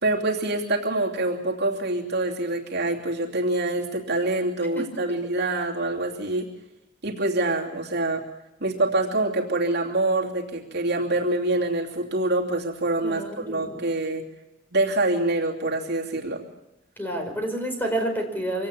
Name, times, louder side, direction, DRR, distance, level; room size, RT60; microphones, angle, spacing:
voice 1, 0.0-6.5 7.0-8.2 8.6-14.3 14.7-16.4, right 2 dB, 60° right, 0 dB, 2.9 m, -25 dB
voice 2, 4.7-5.1 13.0-13.8 17.0-18.7, right 1 dB, 10° left, 3 dB, 5.1 m, -29 dB
25.0 x 17.5 x 7.2 m, 0.99 s
head